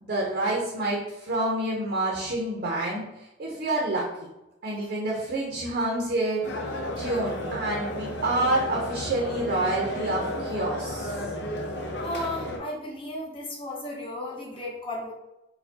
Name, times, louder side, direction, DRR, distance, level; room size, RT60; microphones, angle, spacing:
voice 1, 0.0-3.0 3.4-4.3 4.6-6.4 7.0-11.1, right 2 dB, 50° right, -2 dB, 0.6 m, -28 dB
sound 1, 6.4-12.6, left 1 dB, 60° left, 0.6 m, -33 dB
voice 2, 12.0-15.1, left 1 dB, 30° left, -3 dB, 0.8 m, -34 dB
4.2 x 2.2 x 2.8 m, 0.93 s
head